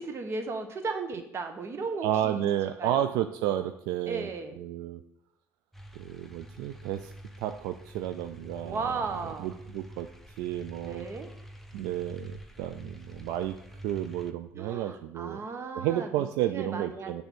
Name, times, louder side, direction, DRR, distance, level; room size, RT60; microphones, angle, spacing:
voice 1, 0.0-2.4 2.8-3.0 4.1-4.6 8.6-9.6 10.8-11.3 14.5-16.3 16.5-17.1, right 4 dB, 45° right, 6 dB, 1.1 m, -35 dB
voice 2, 2.0-5.0 6.0-7.1 7.4-8.8 9.4-10.1 10.4-11.1 11.7-13.6 13.8-15.4 15.8-17.2, right 12 dB, 80° right, 9 dB, 0.4 m, -31 dB
sound 1, 5.7-14.3, equal, 5° left, 0.7 m, -47 dB
6.8 x 3.4 x 6.0 m, 0.78 s
supercardioid pair, 85°, 6 cm